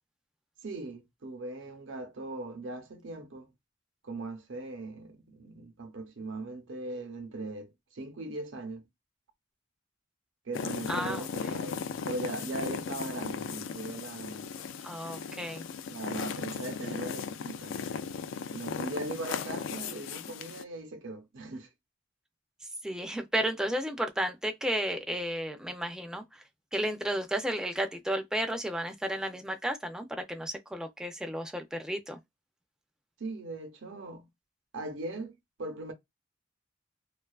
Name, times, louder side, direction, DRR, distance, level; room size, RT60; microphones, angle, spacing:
voice 1, 0.6-3.5 4.0-8.8 10.4-14.5 15.9-17.8 18.5-21.7 33.2-34.3 34.7-35.9, right 2 dB, 80° right, 0.7 m, -39 dB
sound 1, 10.5-20.6, left 6 dB, 85° left, 0.3 m, -37 dB
voice 2, 10.9-11.3 14.8-15.6 22.8-26.4 26.7-32.2, right 1 dB, 5° right, 0.3 m, -33 dB
2.4 x 2.3 x 2.3 m
head